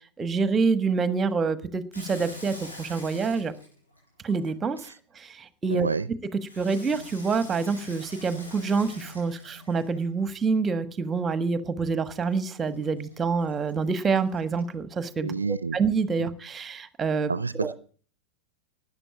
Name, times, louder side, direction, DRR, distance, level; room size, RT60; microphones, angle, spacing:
voice 1, 0.2-3.5 4.2-5.9 6.6-15.3 15.7-17.3 17.6-17.7, right 4 dB, 20° right, 13 dB, 1.4 m, -27 dB
Water tap faucet / Sink (filling or washing), 1.9-4.9 6.5-10.2 12.2-14.7, left 1 dB, 80° left, 7.2 m, -45 dB
voice 2, 5.7-6.1 15.2-15.8 16.2-16.3 17.3-17.7, right 4 dB, 75° right, 17 dB, 0.6 m, -29 dB
13.0 x 9.6 x 8.6 m, 0.44 s
figure-of-eight pair, 90°, 0 cm